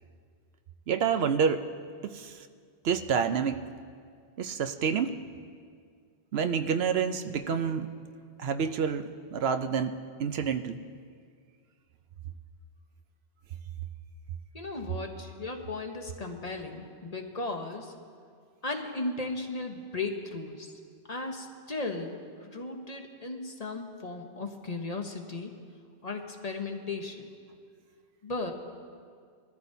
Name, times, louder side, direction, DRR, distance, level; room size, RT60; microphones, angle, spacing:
voice 1, 0.9-1.6 2.0-2.3 2.8-3.6 4.4-5.2 6.3-7.9 8.4-9.9 10.2-10.8, right 6 dB, 70° right, 9 dB, 0.8 m, -28 dB
voice 2, 14.5-17.9 18.6-20.7 21.1-25.5 26.0-27.3 28.2-28.5, left 3 dB, 40° left, 3 dB, 1.0 m, -36 dB
22.0 x 14.0 x 2.7 m, 2.1 s
omnidirectional pair, 1.1 m